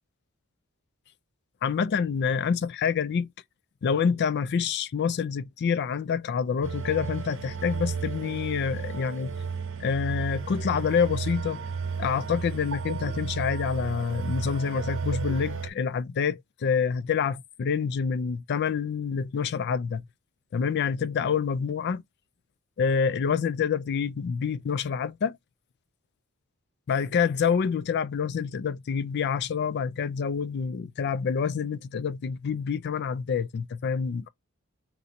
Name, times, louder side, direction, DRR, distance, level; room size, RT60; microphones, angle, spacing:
voice 1, 1.6-3.3 3.8-9.3 9.8-11.6 12.0-20.0 20.5-22.0 22.8-25.4 26.9-34.3, left 6 dB, 50° left, 0.4 m, -27 dB
sound 1, 6.6-15.7, right 5 dB, 65° right, 0.8 m, -33 dB
4.0 x 2.7 x 4.2 m
head